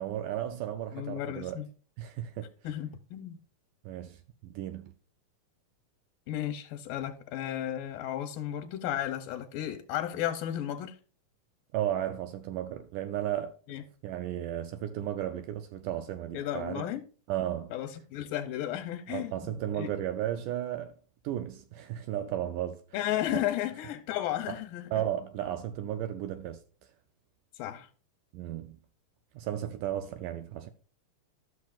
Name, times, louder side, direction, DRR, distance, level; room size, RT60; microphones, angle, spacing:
voice 1, 0.0-1.6 2.0-2.5 3.9-4.9 11.7-13.6 14.0-16.9 17.3-17.7 19.1-21.0 21.2-22.8 23.3-23.4 24.9-26.6 28.3-28.8 29.4-30.7, right 11 dB, 80° right, 2.0 m, -34 dB
voice 2, 0.9-1.7 2.6-3.4 6.3-11.0 13.7-13.8 16.3-17.0 17.7-19.9 22.9-25.0 27.5-27.9, left 12 dB, 85° left, 2.3 m, -34 dB
12.5 x 6.3 x 2.4 m
omnidirectional pair, 3.9 m